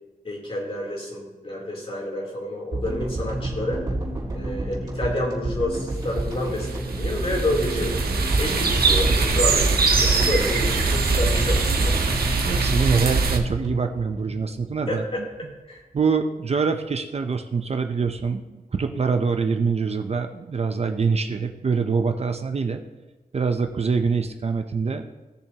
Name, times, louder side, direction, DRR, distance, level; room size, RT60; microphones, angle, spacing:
voice 1, 0.2-3.8 4.3-7.9 8.4-11.9 14.9-15.2 15.7-15.8, left 1 dB, 40° left, -3 dB, 3.2 m, -29 dB
sound 1, 2.7-15.0, right 1 dB, 25° right, 3.9 m, -29 dB
sound 2, 6.3-13.4, right 4 dB, 85° right, 1.2 m, -22 dB
voice 2, 12.4-15.1 15.9-22.8 23.3-25.0, right 5 dB, 40° right, 6 dB, 0.6 m, -24 dB
18.0 x 6.9 x 2.9 m, 1.2 s
wide cardioid pair, 150°, 16 cm